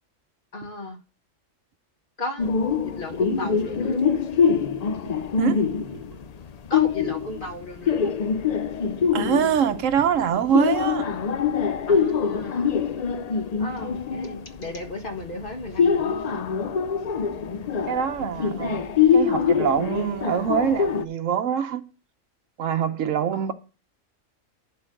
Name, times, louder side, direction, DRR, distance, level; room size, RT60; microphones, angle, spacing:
voice 1, 0.5-1.0 2.2-2.5 2.8-4.1 6.7-8.1 11.9-12.8 13.6-16.4 18.2-18.8 23.3-23.5, left 2 dB, 45° left, 1.5 m, -35 dB
sound 1, 2.4-21.0, left 6 dB, 60° left, 0.4 m, -24 dB
voice 2, 5.4-5.7 9.1-11.1 17.8-18.9 19.1-21.8 22.6-23.5, right 8 dB, 80° right, 1.1 m, -24 dB
11.0 x 3.9 x 6.3 m
omnidirectional pair, 1.3 m